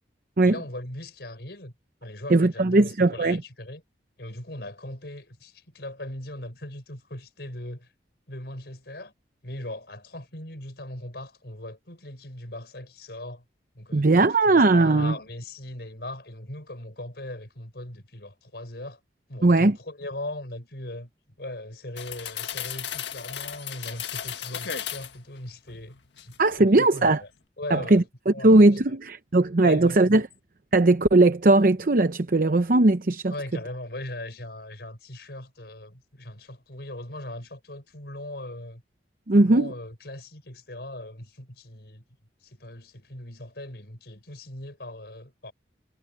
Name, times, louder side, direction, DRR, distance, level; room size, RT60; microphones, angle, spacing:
voice 1, 0.4-1.7 2.0-3.8 4.2-7.9 8.3-9.1 9.4-13.4 13.7-19.0 19.3-21.1 21.4-27.3 27.6-29.0 29.6-30.2 33.3-38.8 39.3-42.0 42.4-45.5, left 1 dB, 65° left, 6.0 m, -39 dB
voice 2, 2.3-3.4 13.9-15.1 19.4-19.7 26.4-27.2 27.7-30.3 30.7-33.3 39.3-39.7, right 2 dB, 50° right, 0.8 m, -19 dB
sound 1, 22.0-25.2 25.7-26.6 27.0-27.2, left 9 dB, 90° left, 1.8 m, -35 dB
head